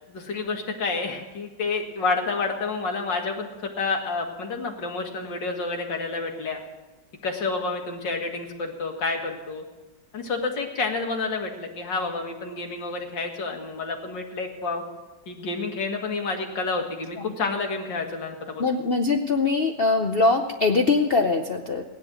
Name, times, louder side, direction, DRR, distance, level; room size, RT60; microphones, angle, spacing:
voice 1, 0.1-6.6 7.2-9.6 10.1-14.8 15.3-18.7, left 3 dB, 75° left, 3 dB, 2.5 m, -29 dB
voice 2, 18.6-21.8, left 3 dB, 55° left, 4 dB, 0.6 m, -22 dB
16.5 x 10.5 x 6.3 m, 1.1 s
omnidirectional pair, 2.0 m